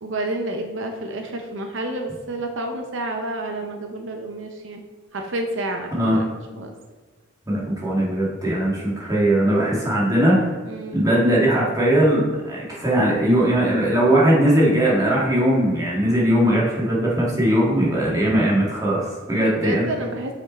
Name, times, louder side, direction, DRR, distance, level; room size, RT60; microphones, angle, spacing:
voice 1, 0.0-4.8 5.1-5.9 6.2-6.7 10.7-11.0 19.4-20.3, right 1 dB, 70° right, 3 dB, 0.7 m, -29 dB
voice 2, 7.5-10.5 10.9-19.9, right 1 dB, 20° right, -5 dB, 1.9 m, -19 dB
6.2 x 5.2 x 4.2 m, 1.3 s
head